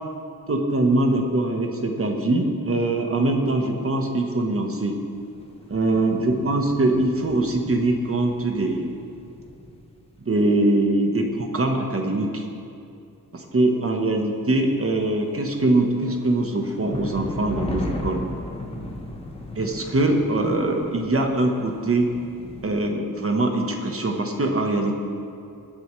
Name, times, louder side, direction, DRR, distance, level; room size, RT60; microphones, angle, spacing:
voice 1, 0.5-4.9 5.7-9.0 10.2-12.5 13.3-18.2 19.6-22.1 22.6-24.9, right 2 dB, 35° right, 2 dB, 1.2 m, -22 dB
sound 1, 5.1-10.3 15.3-22.7, left 1 dB, 15° left, 1.2 m, -36 dB
21.0 x 9.3 x 3.2 m, 2.5 s
wide cardioid pair, 165°, 37 cm